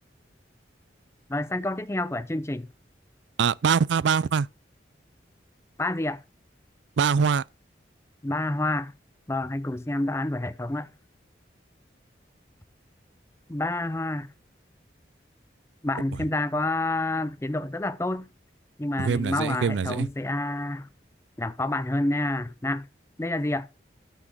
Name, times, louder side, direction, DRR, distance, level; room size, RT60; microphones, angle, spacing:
voice 1, 1.3-2.7 5.8-6.2 8.2-8.9 9.3-10.9 13.5-14.3 15.8-18.3 18.8-20.9 21.4-22.9 23.2-23.7, left 2 dB, 15° left, 0.5 m, -28 dB
voice 2, 3.4-4.5 7.0-7.4 19.0-20.1, right 6 dB, 80° right, 0.4 m, -23 dB
12.5 x 6.0 x 5.0 m
head